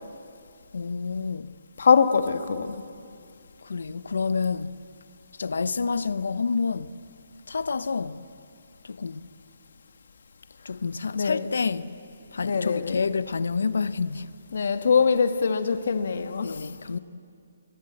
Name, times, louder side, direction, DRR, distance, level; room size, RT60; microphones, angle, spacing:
voice 1, 0.7-1.5 3.6-4.7 5.4-6.9 7.5-8.2 8.8-9.2 10.6-11.9 12.3-14.3 16.4-17.0, left 5 dB, 75° left, 0.9 m, -28 dB
voice 2, 1.8-2.8 11.1-11.5 12.4-13.0 14.5-16.6, left 5 dB, 55° left, 1.4 m, -23 dB
25.0 x 22.0 x 7.9 m
hypercardioid pair, 175°, 0 cm